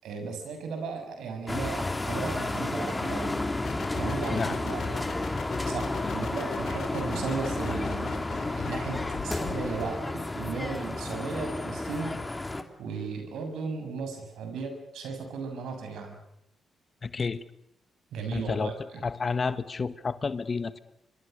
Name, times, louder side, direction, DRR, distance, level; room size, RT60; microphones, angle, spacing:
voice 1, 0.0-3.5 4.0-5.0 5.7-12.2 12.8-16.2 18.1-19.0, right 4 dB, 75° right, 5 dB, 6.7 m, -36 dB
sound 1, 1.5-12.6, left 2 dB, 20° left, 2.9 m, -32 dB
Hi-Bass Wobble with Tape Stop, 3.6-10.0, left 6 dB, 65° left, 3.9 m, -40 dB
voice 2, 17.0-17.4 18.3-18.7 19.0-20.8, left 5 dB, 45° left, 13 dB, 1.5 m, -30 dB
27.0 x 25.0 x 6.7 m, 0.77 s
supercardioid pair, 55°, 0 cm